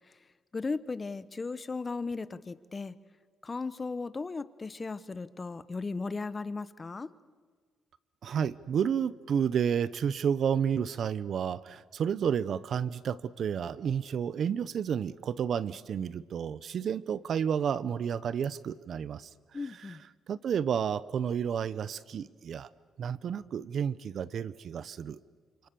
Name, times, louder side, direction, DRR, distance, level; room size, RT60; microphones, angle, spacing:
voice 1, 0.5-2.9 3.4-7.1 19.5-20.0, left 4 dB, 30° left, 15 dB, 1.0 m, -36 dB
voice 2, 8.2-19.3 19.9-20.0 20.3-22.7 23.0-25.2, right 8 dB, 60° right, 18 dB, 0.8 m, -31 dB
29.0 x 27.0 x 6.9 m, 1.5 s
cardioid pair, 90°, 0 cm